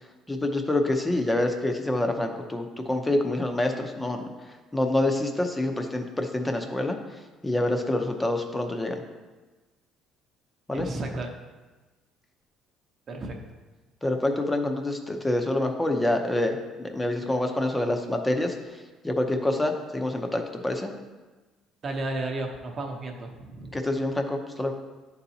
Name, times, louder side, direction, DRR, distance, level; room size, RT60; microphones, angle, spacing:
voice 1, 0.3-7.0 7.4-9.0 10.7-10.9 14.0-20.9 23.7-24.7, left 1 dB, 10° left, 4 dB, 0.7 m, -27 dB
voice 2, 10.7-11.3 13.1-13.3 21.8-23.8, right 2 dB, 35° right, 2 dB, 0.8 m, -33 dB
11.0 x 4.1 x 2.8 m, 1.2 s
cardioid pair, 135°, 0 cm